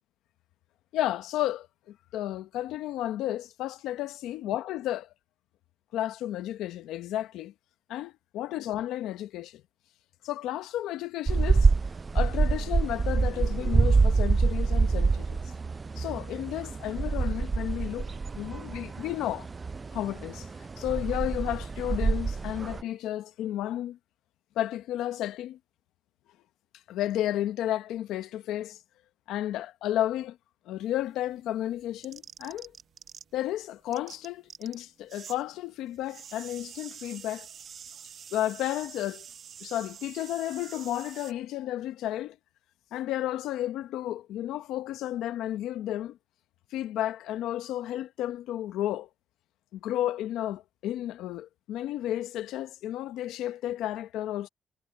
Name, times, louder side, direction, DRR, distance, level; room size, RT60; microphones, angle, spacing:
voice 1, 0.9-5.1 5.9-7.5 7.9-9.6 10.2-11.7 12.1-15.4 16.0-19.5 19.9-20.5 20.8-24.0 24.6-25.6 26.9-28.8 29.3-30.4 30.7-32.7 33.3-37.5 38.3-39.3 39.6-42.4 42.9-46.2 46.7-49.1 49.7-54.5, left 13 dB, 90° left, 0.9 m, -32 dB
sound 1, 11.3-22.8, right 4 dB, 30° right, 0.4 m, -26 dB
sound 2, 30.8-33.5 33.8-35.4 35.7-41.3, right 8 dB, 60° right, 0.7 m, -47 dB
cardioid pair, 90°, 0 cm